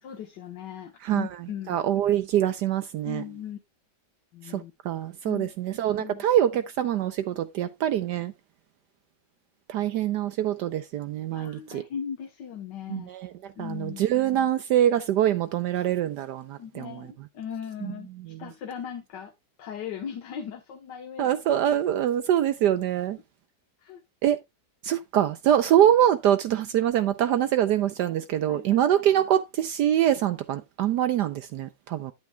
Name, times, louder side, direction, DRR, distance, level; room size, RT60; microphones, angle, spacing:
voice 1, 0.0-1.8 3.0-3.6 4.3-4.7 5.2-5.5 6.0-6.2 11.3-13.1 13.6-14.1 16.6-19.3 19.6-21.4 23.8-24.0 28.5-28.8 30.1-30.2, left 8 dB, 80° left, 1.7 m, -38 dB
voice 2, 1.7-3.2 4.5-8.3 9.7-11.8 12.9-13.3 13.6-17.1 17.8-17.9 18.3-18.4 21.2-23.2 24.2-24.4 24.8-32.1, right 11 dB, 75° right, 1.2 m, -24 dB
10.5 x 8.7 x 2.3 m
omnidirectional pair, 1.9 m